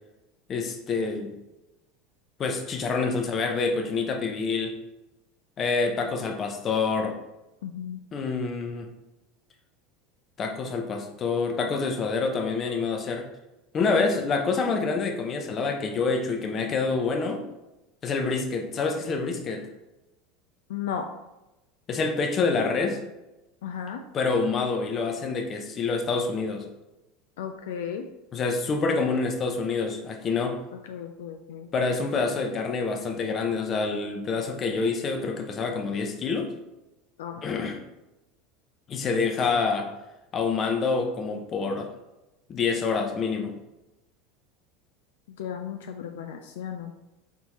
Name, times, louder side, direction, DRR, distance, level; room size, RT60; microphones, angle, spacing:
voice 1, 0.5-1.3 2.4-4.8 5.6-7.2 8.1-8.9 10.4-13.3 13.7-17.4 18.0-19.7 21.9-23.0 24.1-26.7 28.3-30.6 31.7-36.5 37.4-37.8 38.9-39.9 40.3-41.9 42.5-43.6, left 4 dB, 40° left, 4 dB, 0.7 m, -27 dB
voice 2, 7.6-8.0 20.7-21.1 23.6-24.0 27.4-28.1 30.7-31.7 37.2-37.4 45.4-46.9, left 8 dB, 80° left, 5 dB, 0.3 m, -35 dB
4.3 x 3.4 x 3.0 m, 0.99 s
hypercardioid pair, 95°, 0 cm